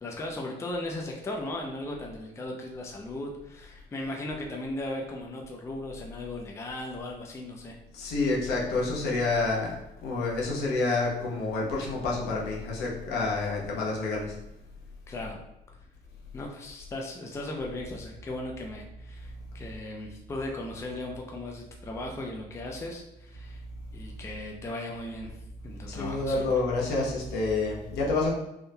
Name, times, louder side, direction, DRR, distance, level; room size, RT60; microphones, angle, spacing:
voice 1, 0.0-7.8 15.1-15.4 16.3-23.6 23.9-25.4 25.6-26.6, left 1 dB, 15° left, 0 dB, 0.4 m, -37 dB
voice 2, 7.9-9.8 10.0-14.4 25.9-28.3, left 3 dB, 75° left, -3 dB, 1.0 m, -28 dB
3.5 x 2.6 x 2.2 m, 0.88 s
cardioid pair, 110°, 17 cm